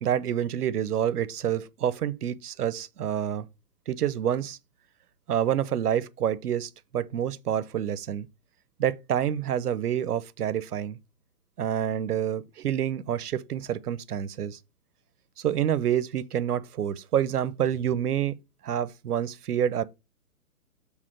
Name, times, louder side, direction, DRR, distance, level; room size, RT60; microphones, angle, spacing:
voice 1, 0.0-3.5 3.9-4.6 5.3-8.3 8.8-11.0 11.6-14.6 15.4-18.3 18.6-19.8, right 10 dB, 80° right, 0.8 m, -28 dB
6.7 x 3.5 x 6.2 m
hypercardioid pair, 180°, 45 cm